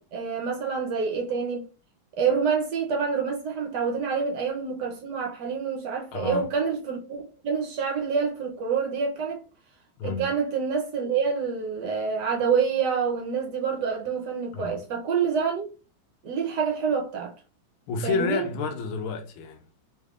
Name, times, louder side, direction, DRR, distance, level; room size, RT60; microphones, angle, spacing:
voice 1, 0.0-1.7 2.2-9.4 10.0-15.7 16.2-17.3 18.0-18.5, right 6 dB, 65° right, 1.1 m, -27 dB
voice 2, 6.1-6.5 10.0-10.3 14.5-14.8 17.9-19.7, left 4 dB, 90° left, 1.5 m, -30 dB
3.5 x 3.3 x 2.3 m
omnidirectional pair, 2.2 m